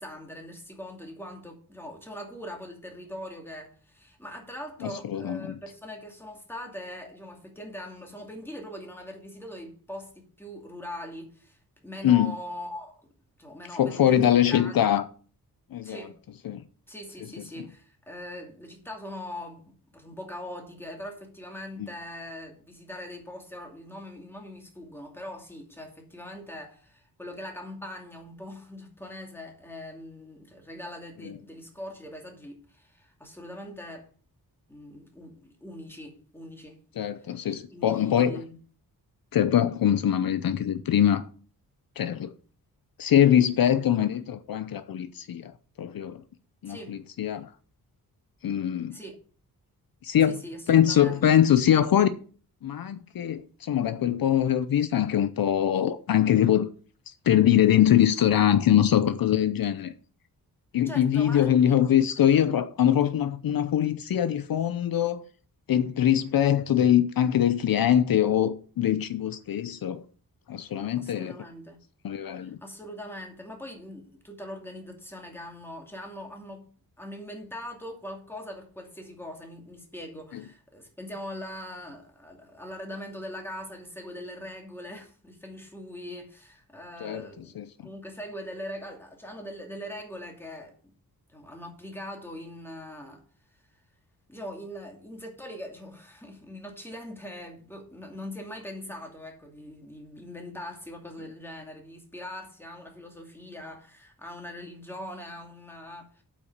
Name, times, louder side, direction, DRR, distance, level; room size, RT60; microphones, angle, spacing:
voice 1, 0.0-13.1 13.4-14.9 15.8-16.1 16.9-34.1 34.7-36.8 37.7-38.6 46.7-47.0 48.9-49.2 50.2-51.2 60.8-61.7 71.0-71.8 72.3-76.7 77.0-90.8 91.3-93.2 94.3-106.2, left 1 dB, 5° left, 2.4 m, -41 dB
voice 2, 4.8-5.5 12.0-12.3 13.8-15.0 15.7-16.0 16.4-16.6 21.8-21.9 31.2-31.3 37.0-38.4 39.3-41.2 42.0-42.3 43.0-45.5 45.8-46.2 46.6-47.5 48.4-49.0 50.0-50.4 50.7-52.1 52.6-56.7 57.1-59.9 60.7-65.2 65.7-70.0 70.5-71.3 72.0-72.6 80.3-80.4 87.0-87.3 87.6-87.7, left 10 dB, 70° left, 0.7 m, -23 dB
8.3 x 6.0 x 6.6 m
wide cardioid pair, 135°, 37 cm